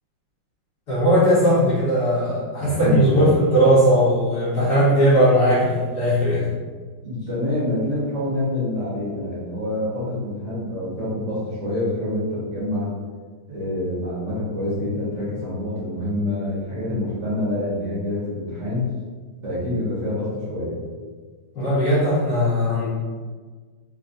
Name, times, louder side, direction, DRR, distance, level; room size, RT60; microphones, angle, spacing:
voice 1, 0.9-6.4 21.5-22.9, equal, 55° left, -9 dB, 1.7 m, -18 dB
voice 2, 2.6-3.3 7.0-12.9 13.5-18.8 19.4-20.8, left 1 dB, 40° right, -10 dB, 1.6 m, -26 dB
4.2 x 3.3 x 2.6 m, 1.5 s
omnidirectional pair, 2.2 m